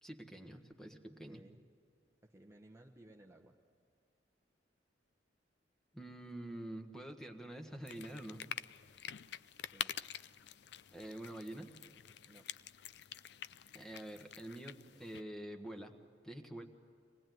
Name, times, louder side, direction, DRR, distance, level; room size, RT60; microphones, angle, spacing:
voice 1, 0.0-1.4 5.9-8.4 10.9-11.7 13.7-15.9 16.2-16.7, right 1 dB, 5° left, 4 dB, 1.4 m, -47 dB
voice 2, 1.3-1.6 2.3-3.5 9.7-10.0 12.2-12.5, right 1 dB, 15° right, 0 dB, 1.0 m, -59 dB
sound 1, 7.9-15.2, left 10 dB, 65° left, 0.5 m, -47 dB
24.5 x 20.0 x 9.2 m, 2.5 s
head